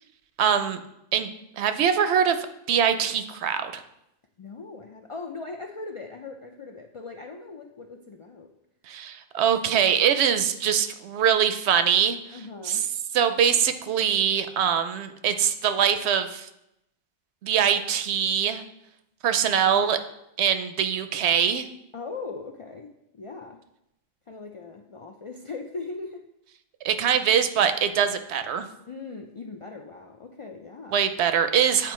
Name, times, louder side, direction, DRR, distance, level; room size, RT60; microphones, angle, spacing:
voice 1, 0.4-0.8 1.1-1.3 1.6-2.4 2.7-3.8 8.9-12.2 12.6-12.8 13.1-16.5 17.4-18.6 19.2-20.0 20.4-21.7 26.8-28.7 30.9-31.9, right 8 dB, 80° right, 9 dB, 0.8 m, -23 dB
voice 2, 4.4-8.5 12.3-12.8 21.9-23.6 24.3-26.2 28.9-31.0, left 3 dB, 60° left, 3 dB, 0.3 m, -39 dB
8.9 x 4.4 x 3.1 m, 0.82 s
omnidirectional pair, 1.1 m